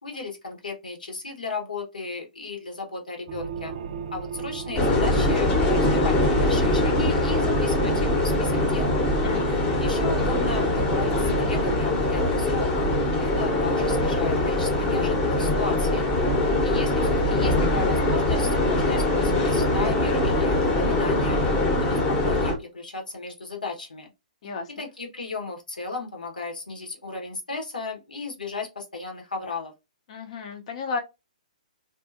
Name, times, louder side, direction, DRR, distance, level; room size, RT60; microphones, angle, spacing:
voice 1, 0.0-3.7 4.1-8.9 9.5-12.9 13.2-16.0 16.6-21.4 21.8-24.1 24.4-24.5 24.8-29.7, left 4 dB, 85° left, 1.1 m, -35 dB
sound 1, 3.3-11.8, right 7 dB, 50° right, 0.5 m, -34 dB
sound 2, 4.8-22.5, left 2 dB, 20° left, 0.9 m, -23 dB
voice 2, 9.2-9.8 24.4-24.9 30.1-31.0, left 4 dB, 50° left, 0.7 m, -34 dB
2.7 x 2.3 x 2.5 m
hypercardioid pair, 130°, 4 cm